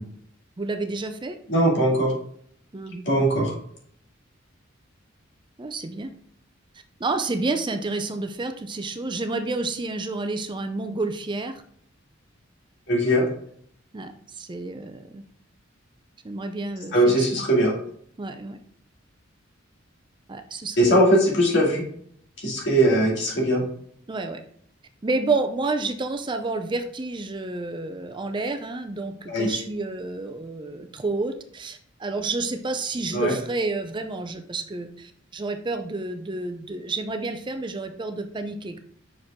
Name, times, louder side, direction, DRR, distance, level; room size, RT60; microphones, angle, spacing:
voice 1, 0.6-1.4 2.7-3.0 5.6-6.1 7.0-11.6 13.9-15.2 16.2-17.2 18.2-18.6 20.3-21.1 24.1-24.4 25.0-38.8, right 3 dB, 25° right, 7 dB, 0.5 m, -30 dB
voice 2, 1.5-2.1 3.1-3.5 12.9-13.3 16.9-17.7 20.8-21.8 22.4-23.6 29.3-29.6 33.1-33.3, right 1 dB, 65° left, -2 dB, 2.4 m, -20 dB
6.1 x 5.0 x 3.6 m, 0.64 s
head